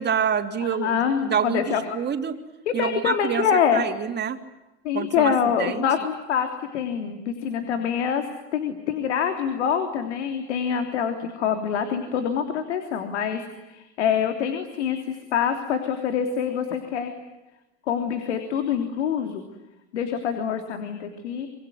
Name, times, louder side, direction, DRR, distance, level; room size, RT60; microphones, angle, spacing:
voice 1, 0.0-1.0 1.2-1.6 1.9-2.4 2.7-3.4 3.7-4.4 4.9-5.8, right 7 dB, 30° right, 6 dB, 3.3 m, -26 dB
voice 2, 0.6-2.0 2.7-3.8 4.8-13.4 13.7-17.1 17.9-19.4 19.9-21.5, left 7 dB, 90° left, 6 dB, 3.3 m, -25 dB
26.5 x 23.5 x 9.4 m, 0.99 s
supercardioid pair, 105°, 33 cm